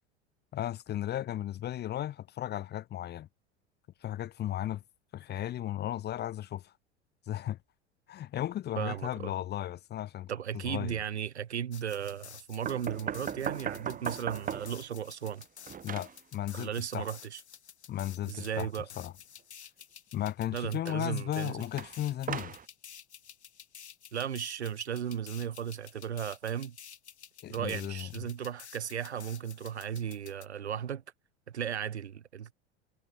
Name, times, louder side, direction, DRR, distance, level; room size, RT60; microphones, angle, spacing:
voice 1, 0.5-3.3 4.0-4.8 5.1-6.7 7.3-7.6 8.1-10.3 10.7-11.0 15.8-17.1 17.9-18.7 19.0-19.1 20.1-22.5 27.4-28.1, left 12 dB, 30° left, 1.1 m, -35 dB
voice 2, 8.8-9.3 10.3-15.4 16.5-17.4 18.2-18.9 20.5-21.6 24.1-26.8 27.5-31.0 31.5-32.5, right 9 dB, 70° right, 4.0 m, -36 dB
sound 1, 11.7-30.5, left 8 dB, 75° left, 2.4 m, -51 dB
sound 2, 12.7-14.9 15.2-16.2 21.8-22.7, right 8 dB, 25° right, 2.1 m, -37 dB
figure-of-eight pair, 75°, 34 cm